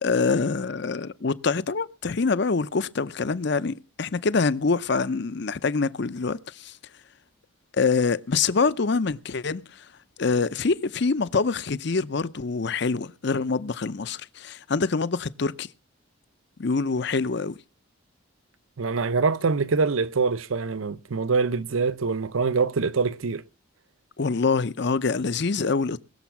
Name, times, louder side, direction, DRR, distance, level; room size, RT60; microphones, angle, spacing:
voice 1, 0.0-6.7 7.8-9.6 10.2-15.7 16.6-17.6 24.2-26.0, left 4 dB, 55° left, 0.6 m, -25 dB
voice 2, 18.8-23.4, right 4 dB, 75° right, 0.7 m, -24 dB
20.5 x 7.1 x 5.9 m
head